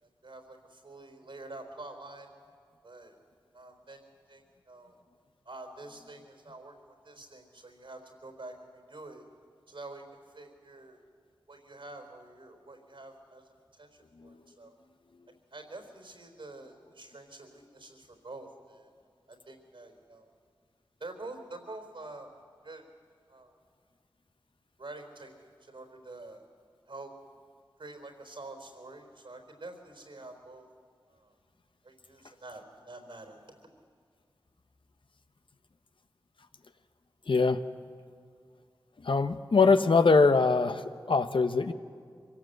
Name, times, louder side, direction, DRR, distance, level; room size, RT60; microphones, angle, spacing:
voice 1, 0.0-2.3 2.8-3.2 3.5-5.0 5.4-9.2 9.7-10.0 10.3-11.0 11.5-13.9 14.2-14.7 15.5-18.9 19.3-20.3 21.0-22.3 22.6-22.8 23.3-23.5 24.8-26.4 26.9-27.1 27.8-30.7 31.1-31.3 31.8-33.4, right 2 dB, 75° right, 4 dB, 4.2 m, -47 dB
voice 2, 37.3-37.6 39.0-41.7, left 4 dB, 70° left, 9 dB, 1.0 m, -23 dB
24.5 x 17.5 x 8.0 m, 2.1 s
cardioid pair, 40°, 9 cm